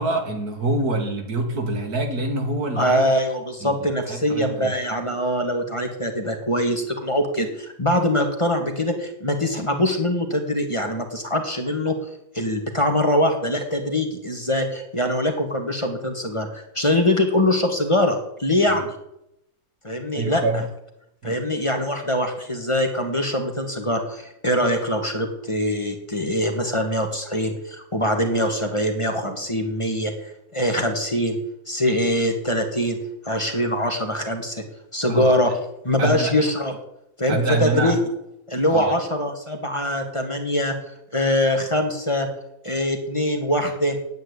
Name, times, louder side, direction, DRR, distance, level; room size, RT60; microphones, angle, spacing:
voice 1, 0.0-3.1 3.6-4.8 18.7-18.8 20.1-20.7 21.2-21.4 35.1-35.6 36.0-36.4 37.3-38.0 38.7-38.9, right 2 dB, 85° right, 4 dB, 2.6 m, -26 dB
voice 2, 2.8-12.0 12.3-19.0 19.8-20.4 21.2-30.1 30.5-31.4 31.7-33.0 33.2-34.6 34.9-35.5 35.8-36.7 37.2-38.0 38.5-40.8 41.1-42.3 42.6-44.0, left 1 dB, 20° left, 3 dB, 1.7 m, -23 dB
9.2 x 8.9 x 9.8 m, 0.82 s
omnidirectional pair, 1.6 m